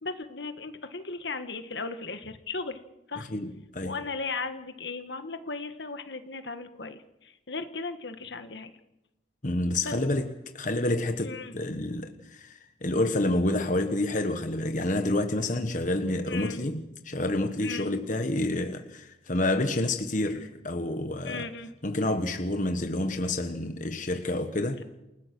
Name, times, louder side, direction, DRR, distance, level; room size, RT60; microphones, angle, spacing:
voice 1, 0.0-2.8 3.1-3.3 3.8-8.7 9.8-9.9 11.2-11.5 16.3-16.6 17.6-17.9 21.2-21.7, left 3 dB, 70° left, 1.6 m, -36 dB
voice 2, 3.3-4.0 9.4-21.4 21.8-24.8, left 1 dB, 45° left, 1.3 m, -29 dB
28.5 x 18.5 x 6.1 m
head